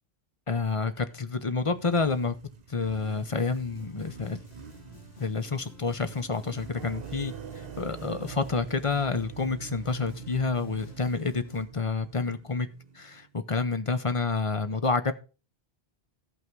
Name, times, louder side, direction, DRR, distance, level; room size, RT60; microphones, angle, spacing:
voice 1, 0.5-2.4 2.7-4.4 5.2-7.3 7.8-12.7 12.9-15.1, left 4 dB, 35° left, 11 dB, 0.8 m, -29 dB
Motorcycle, 1.0-13.7, right 7 dB, 45° right, 1.0 m, -48 dB
sound 1, 3.4-11.6, left 1 dB, 90° left, 2.3 m, -53 dB
sound 2, 6.8-12.6, right 7 dB, 65° right, 1.1 m, -45 dB
14.0 x 5.7 x 4.6 m, 0.33 s
omnidirectional pair, 1.0 m